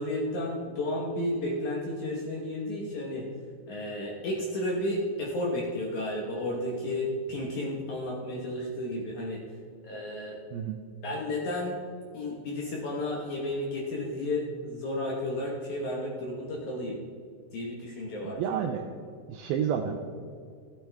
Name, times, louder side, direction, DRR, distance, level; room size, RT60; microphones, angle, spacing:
voice 1, 0.0-3.3 3.7-9.4 9.8-10.4 11.0-11.8 12.1-17.0 17.5-18.4, left 1 dB, 65° left, -2 dB, 2.0 m, -32 dB
voice 2, 18.2-18.8 19.3-20.0, right 8 dB, 85° right, 4 dB, 2.1 m, -30 dB
15.5 x 9.5 x 3.5 m, 2.3 s
omnidirectional pair, 4.9 m